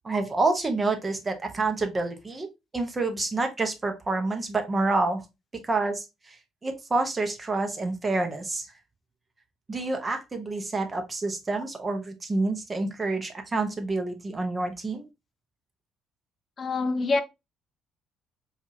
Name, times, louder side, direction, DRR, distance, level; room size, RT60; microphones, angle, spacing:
voice 1, 0.0-2.5 2.7-5.2 5.5-8.7 9.7-15.0, right 3 dB, 25° right, 0.8 m, -28 dB
voice 2, 16.6-17.2, left 3 dB, 35° left, 0.3 m, -25 dB
4.6 x 2.4 x 2.6 m
cardioid pair, 100°, 0 cm